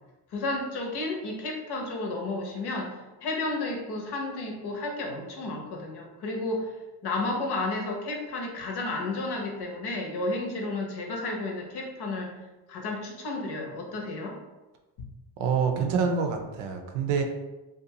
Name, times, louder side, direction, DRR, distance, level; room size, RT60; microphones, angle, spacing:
voice 1, 0.3-2.9 3.2-6.7 7.0-12.3 12.7-14.3, left 2 dB, 50° left, 1 dB, 0.8 m, -32 dB
voice 2, 15.4-17.2, right 6 dB, 80° right, 4 dB, 0.6 m, -26 dB
2.5 x 2.3 x 2.8 m, 1.1 s
supercardioid pair, 75°, 49 cm